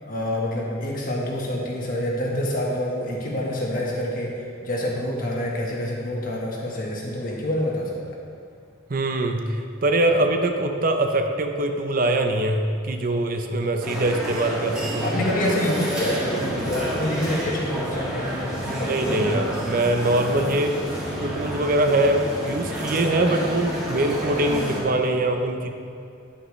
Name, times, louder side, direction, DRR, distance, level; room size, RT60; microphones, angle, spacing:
voice 1, 0.0-8.2 15.0-19.3, left 1 dB, 45° left, -2 dB, 1.4 m, -27 dB
voice 2, 8.9-15.1 18.7-20.8 21.2-25.7, right 1 dB, 45° right, 5 dB, 0.6 m, -23 dB
sound 1, 13.8-24.8, equal, 5° right, 1.9 m, -29 dB
10.0 x 8.3 x 3.2 m, 2.5 s
head